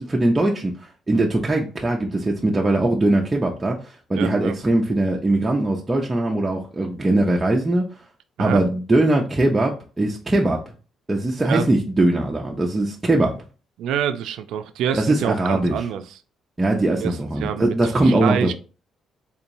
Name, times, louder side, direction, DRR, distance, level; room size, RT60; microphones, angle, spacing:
voice 1, 0.0-7.8 8.4-10.7 11.1-13.4 14.9-15.8 16.6-18.5, right 2 dB, 15° right, 0.4 m, -21 dB
voice 2, 4.1-4.5 8.4-8.6 11.5-11.7 13.8-16.1 17.0-18.5, right 9 dB, 80° right, 0.3 m, -26 dB
3.7 x 2.9 x 2.6 m
cardioid pair, 135°, 0 cm